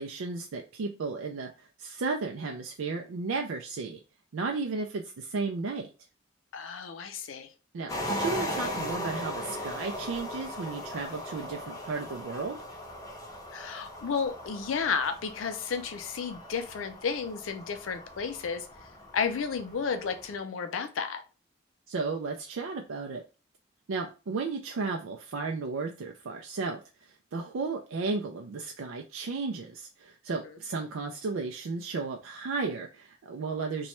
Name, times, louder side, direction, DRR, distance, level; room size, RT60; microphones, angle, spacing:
voice 1, 0.0-4.0 4.3-5.9 7.7-12.6 21.9-23.2 23.9-33.9, right 4 dB, 80° right, 2 dB, 0.4 m, -34 dB
voice 2, 6.5-7.5 13.5-18.7 19.1-21.2 30.4-30.6, left 6 dB, 75° left, 7 dB, 0.4 m, -32 dB
sound 1, 7.9-20.4, equal, 20° left, 0.6 m, -38 dB
3.0 x 2.3 x 4.2 m, 0.33 s
head